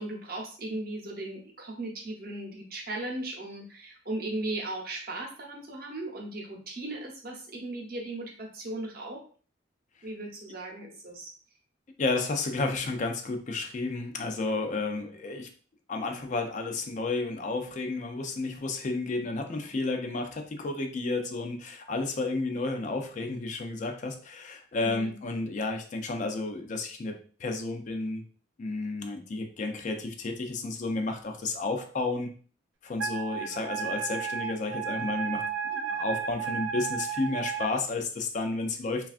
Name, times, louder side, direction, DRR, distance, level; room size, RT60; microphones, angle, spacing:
voice 1, 0.0-9.2 10.0-11.3 24.8-25.2, right 2 dB, 50° right, 0 dB, 0.8 m, -37 dB
voice 2, 12.0-15.5 15.9-28.2 28.6-32.3 32.8-39.1, left 3 dB, 40° left, 5 dB, 0.4 m, -32 dB
Wind instrument woodwind instrument, 33.0-37.7, right 7 dB, 70° right, 0.4 m, -33 dB
3.3 x 2.3 x 2.4 m, 0.42 s
head